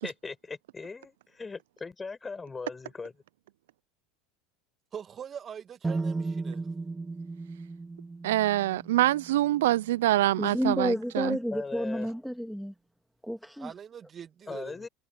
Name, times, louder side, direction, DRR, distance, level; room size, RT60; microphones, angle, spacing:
voice 1, 0.0-3.1 11.5-12.1 14.5-14.9, left 4 dB, 20° left, 5.4 m, -39 dB
voice 2, 4.9-6.6 13.6-14.9, right 8 dB, 35° right, 1.8 m, -43 dB
sound 1, 5.8-9.8, right 3 dB, 15° right, 2.4 m, -35 dB
voice 3, 8.2-11.4, right 15 dB, 75° right, 0.6 m, -25 dB
voice 4, 10.4-12.7 13.2-13.7, equal, ahead, 2.3 m, -30 dB
hypercardioid pair, 80°, 0 cm